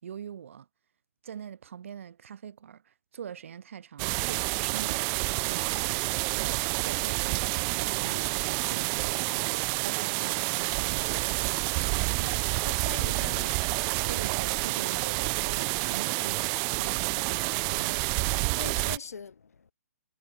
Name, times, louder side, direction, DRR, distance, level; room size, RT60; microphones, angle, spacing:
voice 1, 0.0-0.7 1.2-11.9 14.1-17.4 17.7-18.0, right 8 dB, 55° right, 4.4 m, -43 dB
sound 1, 4.0-19.0, right 40 dB or more, 20° right, 0.4 m, -29 dB
voice 2, 12.6-13.7 18.6-19.7, left 5 dB, 75° left, 1.7 m, -42 dB
hypercardioid pair, 145°, 8 cm